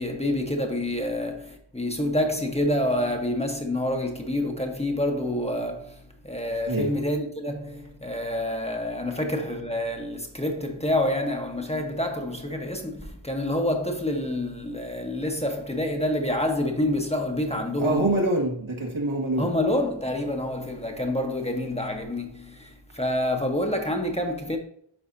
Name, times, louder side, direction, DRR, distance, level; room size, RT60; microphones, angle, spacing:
voice 1, 0.0-18.1 19.4-24.6, left 1 dB, 15° left, 1.1 m, -27 dB
voice 2, 6.7-7.0 17.8-19.5, right 1 dB, 75° right, 1.9 m, -25 dB
11.0 x 4.1 x 2.7 m
wide cardioid pair, 50°, 49 cm